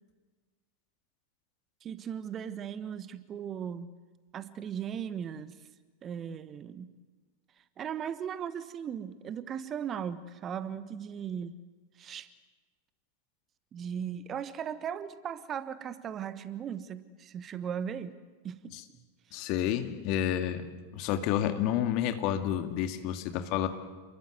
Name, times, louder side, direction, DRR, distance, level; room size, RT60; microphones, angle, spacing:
voice 1, 1.8-3.9 4.3-5.7 6.0-6.9 7.6-11.5 11.9-12.3 13.7-18.2 18.4-18.8, right 8 dB, 25° right, 14 dB, 1.2 m, -37 dB
voice 2, 19.3-20.7 20.9-23.7, left 11 dB, 40° left, 7 dB, 2.2 m, -30 dB
29.0 x 22.0 x 8.0 m, 1.4 s
figure-of-eight pair, 90°, 0 cm